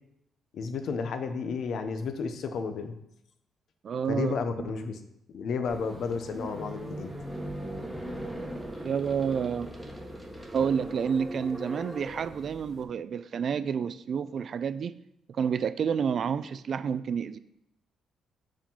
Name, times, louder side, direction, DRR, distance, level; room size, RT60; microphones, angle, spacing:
voice 1, 0.5-3.0 4.1-5.0 5.3-7.1, left 5 dB, 65° left, 8 dB, 0.6 m, -32 dB
voice 2, 3.8-4.7 8.8-9.7 10.5-14.9 15.3-17.4, right 7 dB, 55° right, 14 dB, 0.3 m, -29 dB
sound 1, 5.7-12.8, right 1 dB, 5° right, 1.1 m, -39 dB
4.9 x 3.7 x 5.4 m, 0.81 s
cardioid pair, 90°, 0 cm